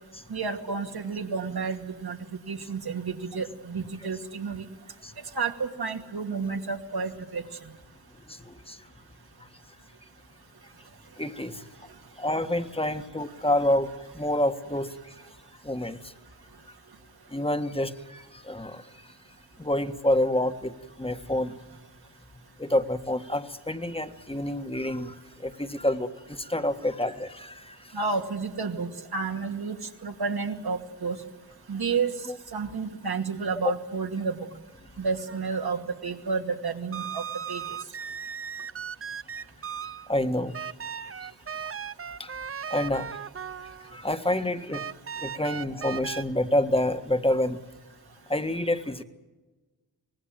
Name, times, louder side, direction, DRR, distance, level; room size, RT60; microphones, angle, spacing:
voice 1, 0.3-2.2 2.5-4.6 5.3-7.4 27.9-31.2 31.7-32.2 32.5-34.4 35.0-37.6, right 5 dB, 70° right, 4 dB, 2.4 m, -31 dB
voice 2, 8.3-8.8 11.2-11.6 12.2-14.9 15.6-16.1 17.3-18.9 19.6-21.5 22.6-27.8 32.3-32.4 39.4-39.5 40.1-40.5 41.0-41.3 42.2-42.3 42.7-43.1 43.9-44.8 45.2-47.6 48.3-49.0, left 1 dB, 15° left, 9 dB, 1.6 m, -28 dB
sound 1, 35.3-35.6 36.9-40.1 40.5-44.0 44.7-46.2, right 7 dB, 35° right, 0.7 m, -37 dB
25.0 x 19.0 x 7.7 m, 1.2 s
cardioid pair, 60°, 40 cm